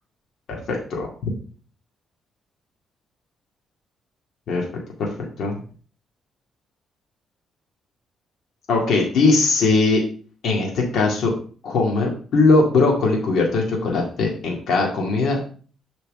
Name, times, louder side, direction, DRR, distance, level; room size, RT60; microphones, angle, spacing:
voice 1, 0.5-1.1 4.5-4.7 5.0-5.6 8.7-10.0 10.4-11.3 11.6-15.4, left 3 dB, 65° left, -1 dB, 2.2 m, -20 dB
7.0 x 4.5 x 5.3 m, 0.42 s
cardioid pair, 90°, 0 cm